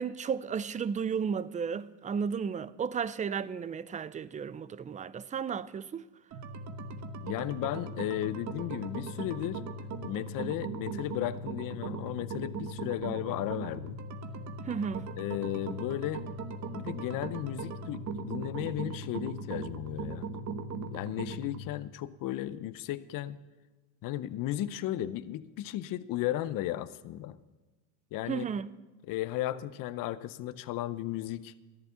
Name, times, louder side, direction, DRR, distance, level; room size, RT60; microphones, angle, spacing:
voice 1, 0.0-6.1 14.6-15.1 28.3-28.7, right 6 dB, 20° right, 0.4 m, -33 dB
sound 1, 6.3-21.7, right 3 dB, 40° right, 1.2 m, -39 dB
voice 2, 7.2-9.6 10.0-14.0 15.2-16.3 16.7-20.3 20.9-23.4 24.0-27.4 28.1-28.5 29.1-31.5, left 13 dB, 50° left, 0.7 m, -35 dB
13.5 x 11.0 x 5.7 m
supercardioid pair, 105°, 42 cm